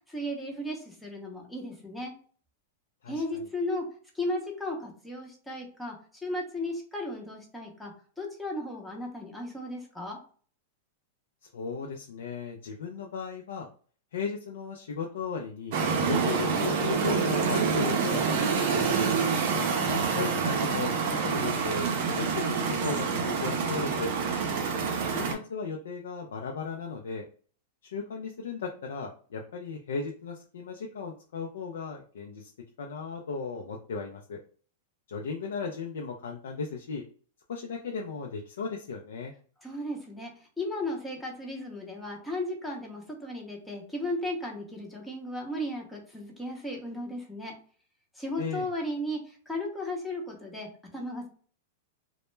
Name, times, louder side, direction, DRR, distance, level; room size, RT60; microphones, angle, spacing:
voice 1, 0.1-2.1 3.1-3.9 4.1-6.0 6.2-10.2 39.6-40.3 40.6-47.5 48.2-51.3, left 1 dB, 5° left, 0 dB, 0.6 m, -35 dB
voice 2, 3.0-3.5 11.5-13.7 14.1-19.0 19.9-21.0 21.2-24.1 25.0-27.3 27.8-32.5 32.8-34.4 35.1-37.0 37.5-39.3 48.4-48.7, left 5 dB, 85° left, 2 dB, 0.4 m, -36 dB
sound 1, 15.7-25.3, right 5 dB, 55° right, 0.5 m, -27 dB
2.1 x 2.1 x 3.1 m, 0.43 s
supercardioid pair, 145°, 0 cm